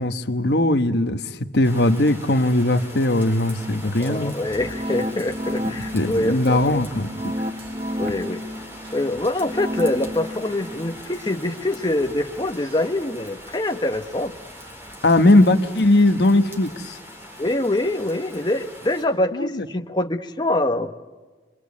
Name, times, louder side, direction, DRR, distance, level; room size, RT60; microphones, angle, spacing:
voice 1, 0.0-4.4 5.8-7.3 15.0-17.0 19.3-19.7, left 1 dB, 65° left, 1.2 m, -19 dB
sound 1, 1.6-19.0, equal, 15° right, 4.2 m, -41 dB
sound 2, 3.6-13.0 13.4-16.3 16.7-16.8, equal, 30° right, 0.9 m, -34 dB
voice 2, 4.0-6.8 8.0-8.4 8.9-14.3 17.4-21.0, left 1 dB, 25° left, 1.0 m, -24 dB
29.5 x 23.5 x 8.5 m
head